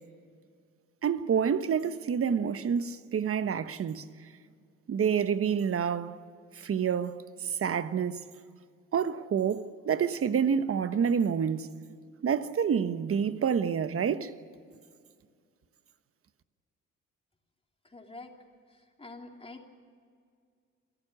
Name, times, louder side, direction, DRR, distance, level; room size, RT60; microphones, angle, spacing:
voice 1, 1.0-4.1 4.9-6.2 6.6-8.2 8.9-11.7 12.2-14.3, right 7 dB, 50° right, 1.1 m, -28 dB
voice 2, 17.8-18.3 18.7-19.7, left 2 dB, 20° left, 3.2 m, -47 dB
28.5 x 12.0 x 10.0 m
cardioid pair, 90°, 30 cm